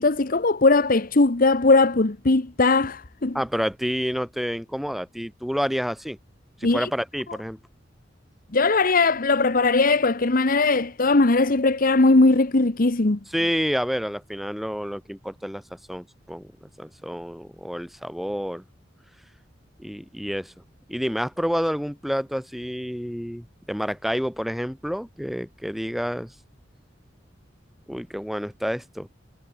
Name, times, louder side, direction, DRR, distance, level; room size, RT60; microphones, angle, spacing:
voice 1, 0.0-3.4 6.6-6.9 8.5-13.2, left 3 dB, 50° left, 1.1 m, -19 dB
voice 2, 3.3-6.2 6.6-7.6 13.3-15.6 15.9-16.5 16.8-18.6 19.8-20.5 20.9-26.3 27.9-29.1, equal, ahead, 3.2 m, -29 dB
head